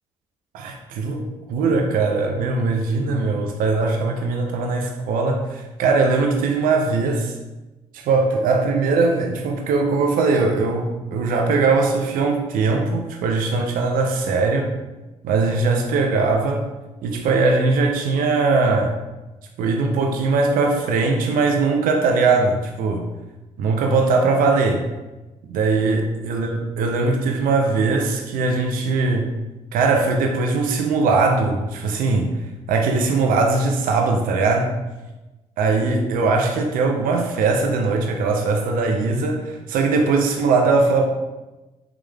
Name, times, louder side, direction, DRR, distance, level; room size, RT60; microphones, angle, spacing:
voice 1, 0.5-7.3 7.9-14.7 15.2-16.6 17.0-19.0 19.6-23.1 23.6-24.9 25.5-29.3 29.7-32.3 32.7-34.7 35.6-41.0, right 3 dB, 80° right, 3 dB, 0.4 m, -20 dB
3.4 x 3.1 x 2.2 m, 1.1 s
supercardioid pair, 55°, 14 cm